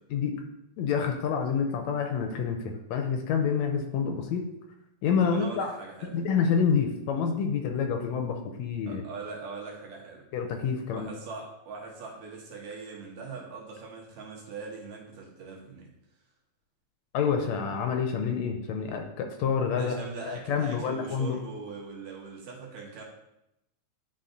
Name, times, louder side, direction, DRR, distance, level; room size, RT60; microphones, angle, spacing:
voice 1, 0.8-4.5 5.0-5.7 6.1-9.0 10.3-11.1 17.1-20.0 20.5-21.4, left 6 dB, 80° left, 4 dB, 1.8 m, -28 dB
voice 2, 5.2-6.2 8.9-10.3 10.9-15.9 19.8-23.0, right 4 dB, 75° right, -2 dB, 2.6 m, -41 dB
11.0 x 3.8 x 2.5 m, 0.86 s
omnidirectional pair, 3.4 m